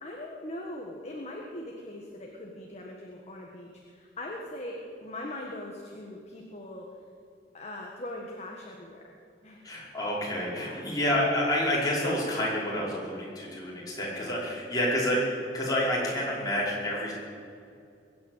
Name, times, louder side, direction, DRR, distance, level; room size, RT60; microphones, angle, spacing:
voice 1, 0.0-6.9 7.5-9.2 9.4-9.6 10.5-10.9 14.2-14.4, left 1 dB, 40° left, 0 dB, 1.5 m, -41 dB
voice 2, 9.6-17.1, left 1 dB, 20° left, -6 dB, 5.1 m, -28 dB
21.5 x 9.1 x 7.4 m, 2.4 s
head